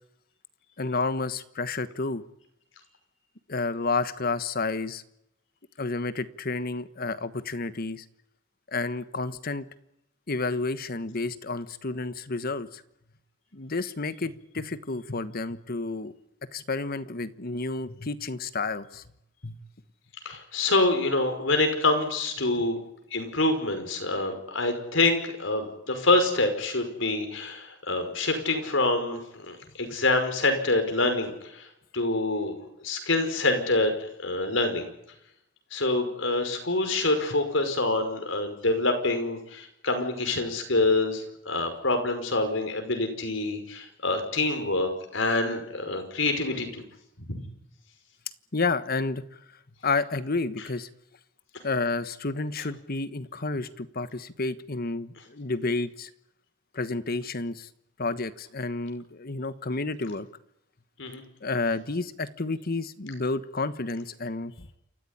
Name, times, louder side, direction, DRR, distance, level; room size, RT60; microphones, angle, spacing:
voice 1, 0.8-2.2 3.5-5.0 5.8-8.0 8.7-9.7 10.3-12.8 13.5-16.1 16.5-19.0 19.4-19.6 48.5-49.2 49.8-50.9 51.6-56.1 56.7-57.7 58.0-60.3 61.4-64.7, left 3 dB, 50° left, 13 dB, 1.3 m, -30 dB
voice 2, 20.3-22.8 23.1-29.2 29.5-31.7 31.9-32.5 32.8-34.9 35.7-46.8 47.3-47.4 61.0-61.2, left 2 dB, 70° left, 6 dB, 5.5 m, -26 dB
28.5 x 14.5 x 9.9 m, 0.80 s
head